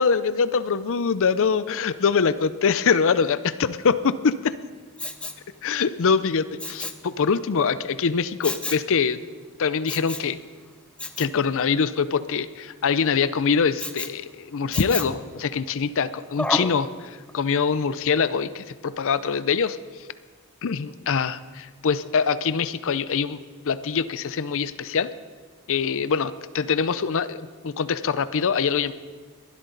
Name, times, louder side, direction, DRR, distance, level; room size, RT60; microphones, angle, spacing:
voice 1, 0.0-4.1 5.6-9.2 9.6-10.4 11.2-19.8 20.6-23.4 23.7-25.1 25.7-28.9, left 6 dB, 60° left, 14 dB, 0.5 m, -24 dB
Respiratory sounds, 5.0-5.5 6.6-7.1 8.4-8.9 9.9-10.3 11.0-11.3 13.8-14.2 14.7-15.2 16.4-16.8 17.3-17.4, left 1 dB, 5° left, 0.6 m, -30 dB
22.0 x 12.0 x 3.9 m, 1.5 s
head